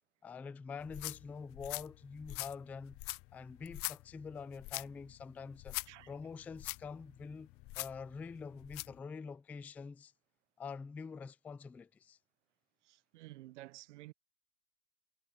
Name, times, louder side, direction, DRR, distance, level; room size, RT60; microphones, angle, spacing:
voice 1, 0.2-3.0 3.3-5.8 6.1-7.5 7.8-10.1 10.6-12.2, left 5 dB, 5° left, 0.3 m, -46 dB
sound 1, 0.8-9.0, left 22 dB, 35° left, 0.8 m, -45 dB
voice 2, 12.8-14.1, right 17 dB, 65° right, 0.8 m, -52 dB
hypercardioid pair, 115°, 39 cm